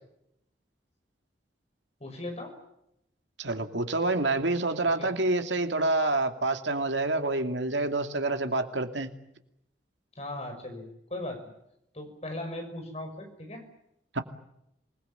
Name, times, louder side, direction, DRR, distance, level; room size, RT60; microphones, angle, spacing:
voice 1, 2.0-2.6 4.8-5.3 10.2-11.5 11.9-13.6, left 1 dB, 35° left, 5 dB, 6.0 m, -38 dB
voice 2, 3.4-9.1 14.1-14.2, right 2 dB, 85° right, 7 dB, 2.5 m, -27 dB
27.0 x 20.5 x 9.1 m, 0.81 s
head